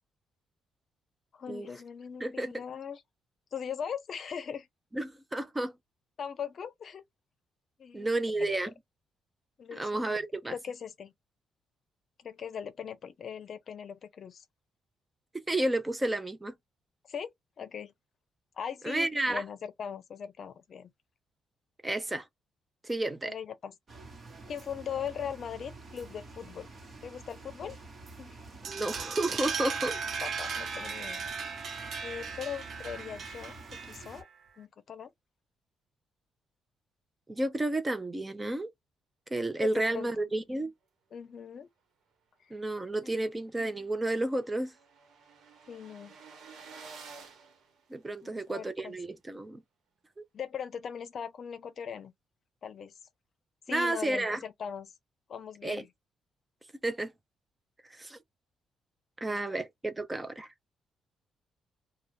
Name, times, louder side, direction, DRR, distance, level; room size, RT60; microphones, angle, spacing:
voice 1, 1.3-3.0 3.5-4.7 6.2-7.0 7.8-8.3 9.6-11.1 12.2-14.4 17.1-17.9 18.6-20.9 23.2-23.8 24.5-26.7 27.0-27.8 28.2-28.4 30.2-31.2 32.0-34.3 34.6-35.1 39.6-40.3 41.1-41.7 45.7-46.2 48.2-49.0 50.3-52.1 52.6-52.9 53.7-54.9 55.3-55.9 59.3-59.4, left 7 dB, 55° left, 0.6 m, -40 dB
voice 2, 2.2-2.5 4.9-5.7 7.9-8.7 9.7-10.5 15.5-16.5 18.8-19.4 21.8-22.2 22.8-23.3 28.6-30.0 37.3-38.7 39.3-40.7 42.5-44.7 47.9-49.6 53.7-54.4 55.6-55.8 56.8-57.1 58.0-58.2 59.2-60.5, right 2 dB, 15° right, 0.6 m, -31 dB
sound 1, 23.9-34.2, right 3 dB, 40° right, 1.2 m, -49 dB
sound 2, 28.6-34.2, right 5 dB, 60° right, 0.8 m, -37 dB
sound 3, 42.9-43.0 43.4-43.5 43.6-48.5, right 5 dB, 75° right, 1.1 m, -52 dB
2.4 x 2.3 x 3.4 m
cardioid pair, 90°, 0 cm